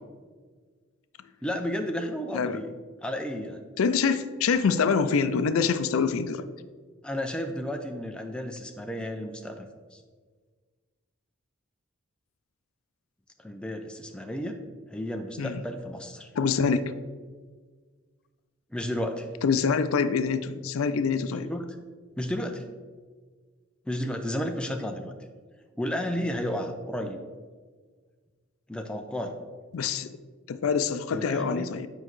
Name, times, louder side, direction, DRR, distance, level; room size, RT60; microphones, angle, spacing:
voice 1, 1.4-2.8 3.0-3.6 7.0-10.0 13.4-14.6 14.9-16.3 18.7-19.3 21.3-21.7 22.2-22.7 23.9-25.1 25.8-27.2 28.7-29.4 31.1-31.7, equal, 5° left, 4 dB, 0.4 m, -32 dB
voice 2, 3.8-6.4 15.4-15.6 16.4-16.8 19.4-21.5 29.7-30.1 30.5-31.9, left 5 dB, 90° left, 12 dB, 0.4 m, -25 dB
7.8 x 5.2 x 3.1 m, 1.5 s
head